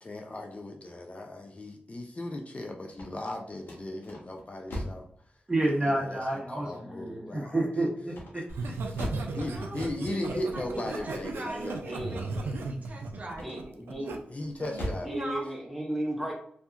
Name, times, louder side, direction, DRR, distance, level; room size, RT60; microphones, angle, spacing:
voice 1, 0.0-5.0 5.8-7.7 8.3-8.4 8.9-9.0 9.3-11.8 14.3-15.1, left 1 dB, 35° left, 2 dB, 0.4 m, -37 dB
sound 1, 2.8-5.1 8.1-9.4 13.3-13.9 14.4-15.2, equal, 70° left, 0.9 m, -38 dB
voice 2, 5.5-8.4, right 1 dB, 20° right, -4 dB, 1.2 m, -29 dB
Laughter, 8.5-14.2 14.6-14.9, right 3 dB, 85° right, 0.3 m, -36 dB
voice 3, 9.3-9.8 10.3-14.1 15.0-15.5, right 1 dB, 45° right, -1 dB, 0.6 m, -41 dB
voice 4, 11.4-12.2 13.4-14.2 15.0-16.3, right 1 dB, ahead, 0 dB, 0.8 m, -35 dB
2.6 x 2.4 x 2.3 m, 0.63 s
cardioid pair, 50°, 4 cm